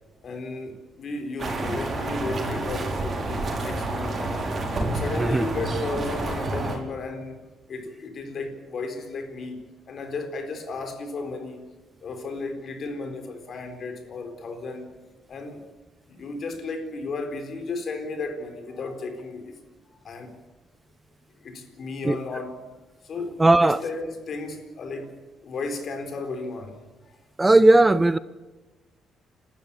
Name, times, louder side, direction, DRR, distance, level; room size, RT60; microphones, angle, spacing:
voice 1, 0.2-4.5 4.9-7.4 7.7-11.7 12.0-14.9 15.3-15.6 16.1-19.6 20.0-20.4 21.4-22.6 23.0-25.1 25.4-26.8, left 3 dB, 55° left, 4.1 m, -34 dB
sound 1, 1.4-6.8, right 2 dB, 45° right, 5.0 m, -29 dB
voice 2, 23.4-23.8 27.4-28.2, right 2 dB, 15° right, 0.7 m, -17 dB
29.5 x 13.0 x 8.8 m
cardioid pair, 90°, 0 cm